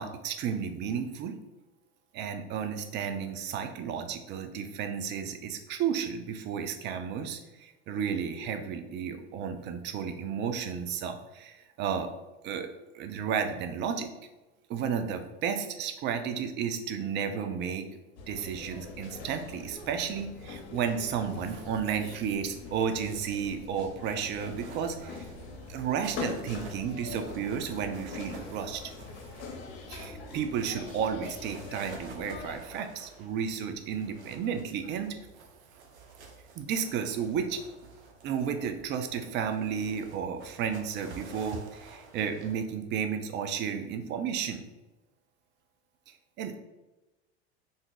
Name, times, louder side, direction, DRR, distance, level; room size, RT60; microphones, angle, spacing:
voice 1, 0.0-1.4 2.1-12.1 12.4-12.7 12.9-14.1 14.7-17.9 18.3-25.3 25.7-28.8 29.9-35.2 36.6-37.6 38.2-44.7 46.4-46.6, right 7 dB, 35° right, 7 dB, 0.4 m, -33 dB
sound 1, 18.2-32.6, left 4 dB, 60° left, 0.7 m, -43 dB
sound 2, 24.3-42.6, right 3 dB, 85° right, 0.6 m, -49 dB
2.6 x 2.3 x 3.7 m, 1.0 s
hypercardioid pair, 95°, 33 cm